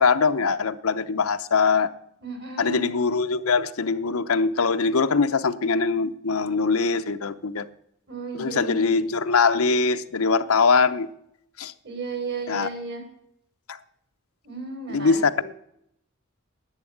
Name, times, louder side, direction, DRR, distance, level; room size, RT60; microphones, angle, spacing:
voice 1, 0.0-1.9 2.6-7.7 8.3-11.1 11.6-11.7 12.5-12.7 13.7-13.8 14.9-15.4, left 4 dB, 85° left, 0.7 m, -22 dB
voice 2, 2.2-2.9 8.1-9.0 11.8-13.1 14.4-15.4, right 4 dB, 50° right, 3.6 m, -34 dB
11.0 x 8.1 x 10.0 m
head